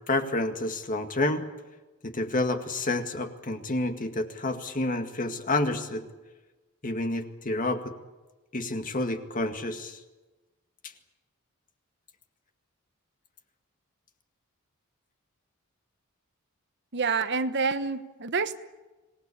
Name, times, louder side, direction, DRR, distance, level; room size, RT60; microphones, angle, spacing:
voice 1, 0.0-1.5 2.0-6.0 6.8-7.9 8.5-10.0, left 2 dB, 40° left, 6 dB, 2.0 m, -29 dB
voice 2, 16.9-18.6, right 4 dB, 50° right, 10 dB, 1.2 m, -27 dB
26.0 x 20.0 x 8.7 m, 1.2 s
head